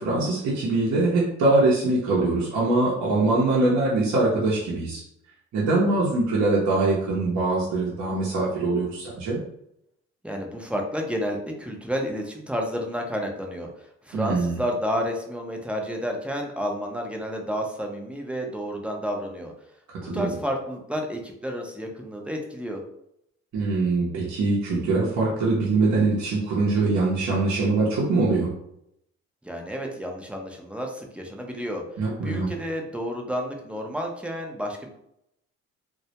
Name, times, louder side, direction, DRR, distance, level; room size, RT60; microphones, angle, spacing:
voice 1, 0.0-5.0 5.5-9.4 14.1-14.6 19.9-20.3 23.5-28.5 32.0-32.5, right 2 dB, 65° right, -6 dB, 0.7 m, -23 dB
voice 2, 10.2-19.5 20.0-22.8 29.4-31.8 32.2-34.9, equal, 5° right, 1 dB, 0.4 m, -31 dB
2.2 x 2.0 x 2.7 m, 0.77 s
cardioid pair, 90°, 30 cm